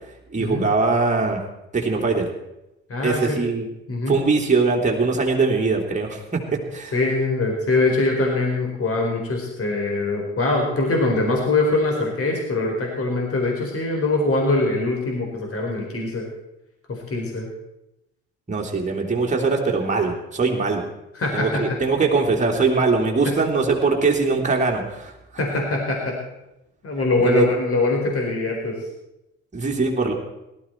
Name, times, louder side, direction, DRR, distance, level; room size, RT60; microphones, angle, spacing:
voice 1, 0.3-1.4 1.7-2.3 3.0-3.7 4.1-6.2 6.5-6.9 18.5-20.8 21.3-25.1 27.2-27.5 29.5-30.1, right 4 dB, 20° right, -1 dB, 3.1 m, -21 dB
voice 2, 2.9-3.4 3.9-4.2 6.9-16.3 16.9-17.5 21.1-21.8 23.2-23.4 25.4-26.1 26.8-28.8, left 2 dB, 40° left, 0 dB, 4.4 m, -23 dB
18.0 x 13.0 x 4.6 m, 0.90 s
hypercardioid pair, 50°, 34 cm